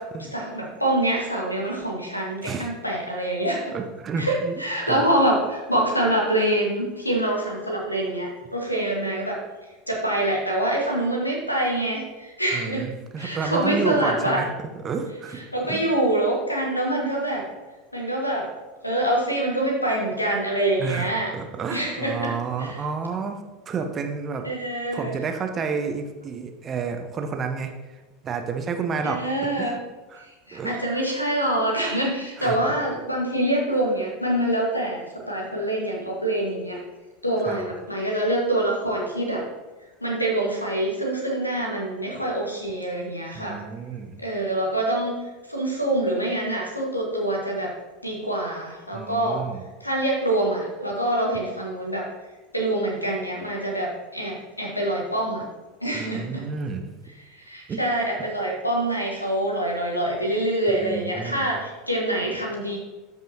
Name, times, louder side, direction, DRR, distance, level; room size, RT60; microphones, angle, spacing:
voice 1, 0.3-3.7 4.2-9.4 9.9-12.9 13.2-14.4 15.5-17.4 17.9-18.5 18.8-21.3 21.7-22.8 24.4-25.2 29.0-29.8 30.2-36.8 37.2-39.4 40.0-43.6 44.2-45.2 45.5-47.7 48.0-49.4 49.8-52.1 52.5-55.4 55.8-56.5 57.3-62.8, right 1 dB, 90° left, -1 dB, 1.6 m, -25 dB
voice 2, 2.4-2.7 3.7-4.5 4.8-5.0 12.5-14.5 14.8-15.4 15.7-15.9 20.8-23.4 23.7-24.4 24.9-27.7 28.2-29.2 29.6-29.8 30.1-30.2 30.5-30.8 32.4-32.8 37.5-37.6 43.3-44.2 48.9-49.6 55.9-56.9 57.7-57.8 60.7-61.5, right 5 dB, 30° right, 6 dB, 0.9 m, -30 dB
13.0 x 5.4 x 2.9 m, 1.2 s
figure-of-eight pair, 80°, 0 cm